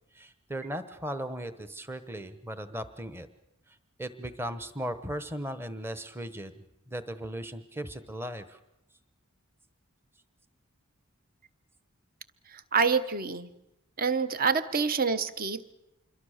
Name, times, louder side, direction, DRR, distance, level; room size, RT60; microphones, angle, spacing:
voice 1, 0.1-3.3 3.7-8.6, equal, 10° right, 10 dB, 1.0 m, -37 dB
voice 2, 12.7-13.5 14.0-15.7, right 5 dB, 40° right, 12 dB, 1.0 m, -27 dB
27.0 x 22.5 x 6.5 m, 0.87 s
head